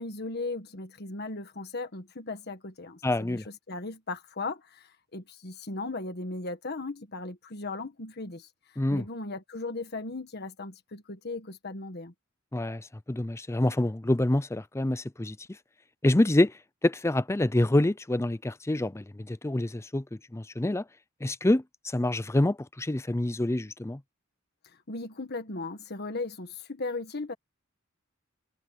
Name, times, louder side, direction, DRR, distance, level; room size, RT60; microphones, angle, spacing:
voice 1, 0.0-8.5 8.9-12.1 24.9-27.3, left 3 dB, 55° left, 1.5 m, -37 dB
voice 2, 3.0-3.4 8.8-9.0 12.5-15.4 16.0-16.5 16.8-20.8 21.2-24.0, left 1 dB, 15° left, 0.5 m, -27 dB
head